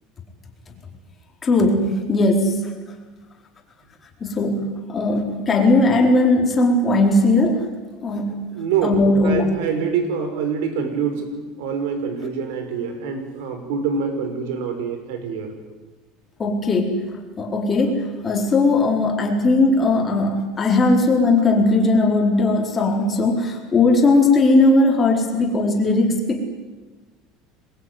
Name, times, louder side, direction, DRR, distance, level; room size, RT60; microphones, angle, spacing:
voice 1, 1.4-2.7 4.2-7.6 8.0-8.5 8.8-9.5 16.4-17.0 17.4-26.4, left 2 dB, 20° left, 1 dB, 4.4 m, -18 dB
voice 2, 8.5-9.0 9.2-15.5, right 6 dB, 85° right, 7 dB, 5.6 m, -25 dB
27.0 x 22.0 x 9.6 m, 1.3 s
cardioid pair, 155°, 0 cm